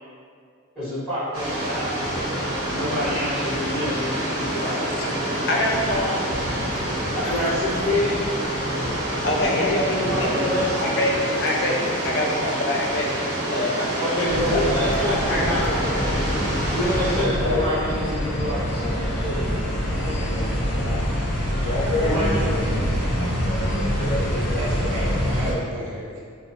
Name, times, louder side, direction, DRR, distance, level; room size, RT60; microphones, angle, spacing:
voice 1, 0.7-1.9 2.7-4.7 7.3-8.2 9.4-10.7 14.0-15.6 16.7-19.0 22.0-22.9, left 1 dB, 5° left, -21 dB, 1.1 m, -27 dB
sound 1, 1.3-17.2, right 1 dB, 75° right, 0.8 m, -27 dB
voice 2, 4.7-6.2 6.7-7.2 9.2-14.6 15.0-16.0, left 1 dB, 50° left, -2 dB, 0.4 m, -26 dB
sound 2, 14.3-25.5, equal, 85° left, 0.8 m, -24 dB
voice 3, 24.5-26.2, right 1 dB, 55° right, -4 dB, 0.4 m, -33 dB
2.7 x 2.1 x 2.7 m, 2.2 s
head